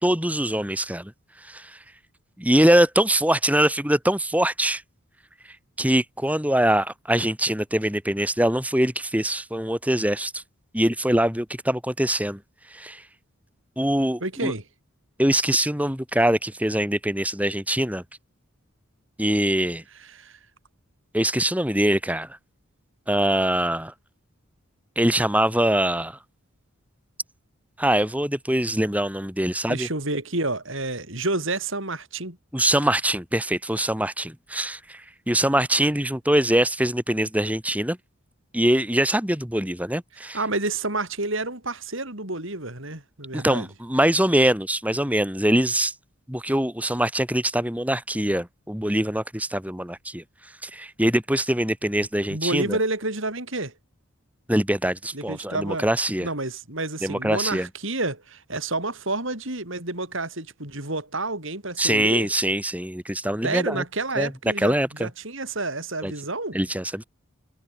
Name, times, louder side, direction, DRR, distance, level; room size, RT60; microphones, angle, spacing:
voice 1, 0.0-1.1 1.5-1.7 2.4-4.8 5.8-10.4 10.7-12.4 12.7-13.0 13.8-14.5 15.2-18.0 19.2-19.8 21.1-22.3 23.1-23.9 25.0-26.2 27.8-29.9 32.5-35.0 35.3-38.0 38.5-40.4 43.3-45.9 46.3-50.2 50.6-52.8 54.5-56.3 57.0-57.7 61.8-63.8 64.2-64.3 64.6-65.1 66.0-66.1 66.5-67.0, right 1 dB, 5° right, 4.8 m, -23 dB
voice 2, 14.2-14.6 20.0-20.4 29.7-32.4 40.2-43.7 52.3-53.7 55.1-55.9 56.2-62.3 63.4-66.6, right 2 dB, 60° right, 5.8 m, -29 dB
head